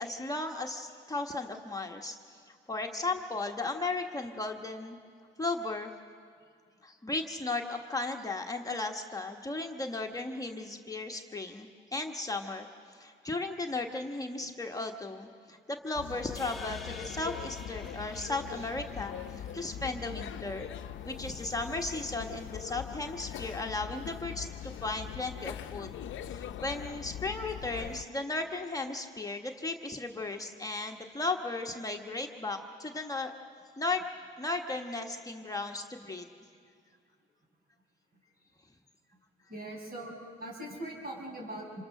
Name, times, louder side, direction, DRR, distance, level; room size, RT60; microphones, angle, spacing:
voice 1, 0.0-2.2 2.5-5.0 5.4-5.9 6.8-20.7 21.0-25.9 26.3-33.3 33.8-34.0 34.4-36.2, left 2 dB, 15° left, 2 dB, 1.2 m, -35 dB
sound 1, 16.0-28.0, left 10 dB, 75° left, 0.7 m, -41 dB
sound 2, 16.3-20.8, left 1 dB, ahead, 1.6 m, -50 dB
voice 2, 39.5-41.8, right 1 dB, 50° right, 0 dB, 6.4 m, -41 dB
27.0 x 23.5 x 6.5 m, 2.2 s
cardioid pair, 90°, 20 cm